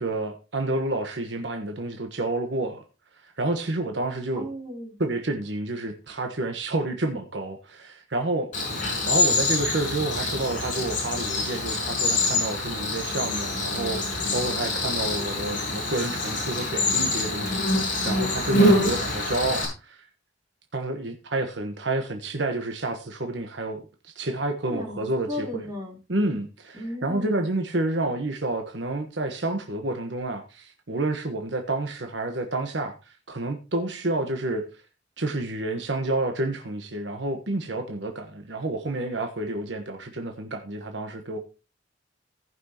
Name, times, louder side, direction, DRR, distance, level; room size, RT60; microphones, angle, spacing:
voice 1, 0.0-2.8 3.2-4.5 5.0-20.1 20.7-25.6 26.1-34.6 35.2-41.4, right 2 dB, 70° right, 1.3 m, -29 dB
voice 2, 4.4-5.0 24.6-26.0 26.7-27.4, left 1 dB, 20° right, 3.4 m, -35 dB
Cricket, 8.5-19.7, left 2 dB, 45° left, 5.5 m, -25 dB
18.0 x 6.1 x 2.9 m
head